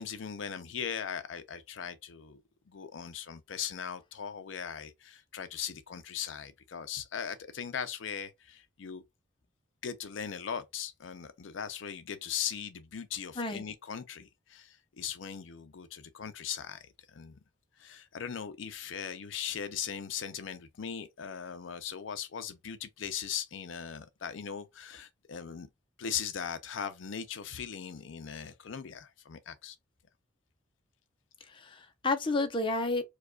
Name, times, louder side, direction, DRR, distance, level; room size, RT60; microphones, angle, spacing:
voice 1, 0.0-2.4 2.7-9.0 9.8-17.4 17.8-25.7 26.0-29.8, left 8 dB, 70° left, 0.5 m, -39 dB
voice 2, 31.5-33.0, left 2 dB, 25° left, 0.6 m, -31 dB
4.7 x 2.3 x 2.2 m
head